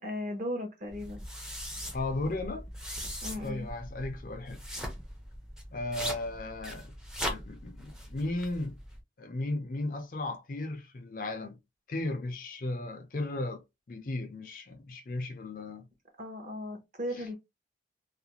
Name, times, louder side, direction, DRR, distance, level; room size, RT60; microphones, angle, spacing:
voice 1, 0.0-1.2 3.2-3.7 16.2-17.3, left 1 dB, 40° right, 0.8 m, -36 dB
sound 1, 0.9-9.0, equal, 5° right, 0.5 m, -40 dB
voice 2, 1.9-2.7 3.4-4.6 5.7-6.9 7.2-8.8 9.2-11.6 11.9-15.9 17.2-17.3, left 2 dB, 50° left, 0.4 m, -35 dB
2.4 x 2.1 x 2.8 m
head